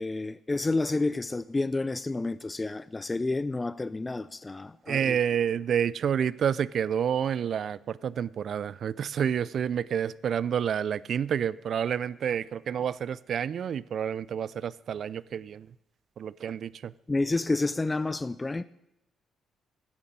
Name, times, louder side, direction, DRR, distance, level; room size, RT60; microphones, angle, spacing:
voice 1, 0.0-5.2 17.1-18.6, left 2 dB, 20° left, 0.3 m, -29 dB
voice 2, 4.9-15.7 16.2-16.9, right 8 dB, 60° right, 0.3 m, -29 dB
16.0 x 5.3 x 7.3 m
cardioid pair, 90°, 0 cm